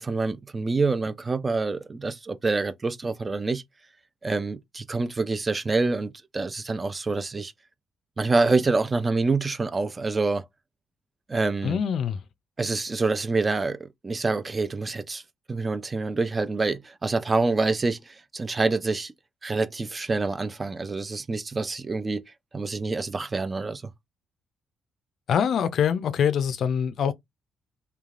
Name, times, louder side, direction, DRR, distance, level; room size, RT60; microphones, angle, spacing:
voice 1, 0.0-3.6 4.2-7.5 8.2-10.4 11.3-11.8 12.6-13.8 14.0-15.2 15.5-19.1 19.4-22.2 22.5-23.8, right 3 dB, 25° right, 0.4 m, -26 dB
voice 2, 11.6-12.2 25.3-27.1, left 8 dB, 65° left, 0.4 m, -24 dB
3.2 x 2.2 x 2.4 m
cardioid pair, 90°, 0 cm